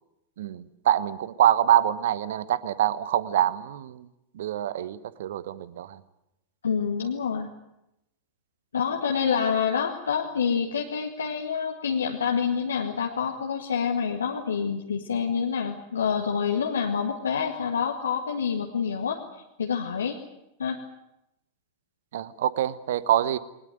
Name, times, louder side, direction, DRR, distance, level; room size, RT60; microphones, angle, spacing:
voice 1, 0.4-4.1 4.3-6.0 22.1-23.4, right 11 dB, 60° right, 16 dB, 1.1 m, -25 dB
voice 2, 6.6-7.5 8.7-19.2 19.6-20.2 20.6-20.8, left 6 dB, 70° left, 1 dB, 1.8 m, -27 dB
21.5 x 19.5 x 9.2 m, 0.88 s
figure-of-eight pair, 90°, 0 cm